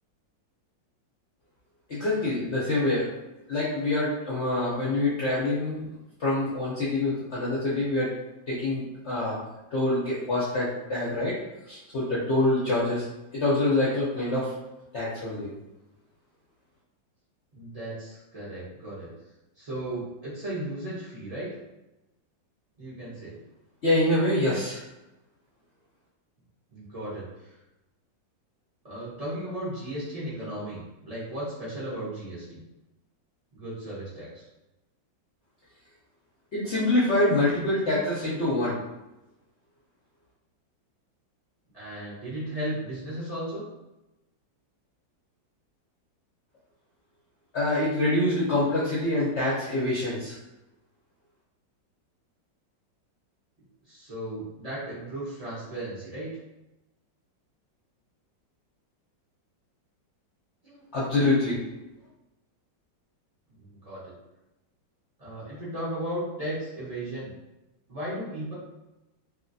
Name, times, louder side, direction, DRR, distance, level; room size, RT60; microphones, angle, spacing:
voice 1, 1.9-3.0 3.5-5.9 6.2-8.1 8.5-9.4 9.7-11.4 11.7-13.0 13.3-14.5 14.9-15.5 23.8-24.8 36.5-38.8 47.5-50.3 60.9-61.6, left 2 dB, 70° left, -8 dB, 0.6 m, -25 dB
voice 2, 17.5-19.1 19.6-21.5 22.8-23.4 26.7-27.6 28.8-32.6 33.5-34.5 41.7-43.6 53.8-56.3 60.6-60.8 63.5-64.1 65.2-67.3 67.9-68.5, right 1 dB, 50° right, -10 dB, 0.4 m, -35 dB
2.9 x 2.8 x 2.6 m, 0.97 s
omnidirectional pair, 2.1 m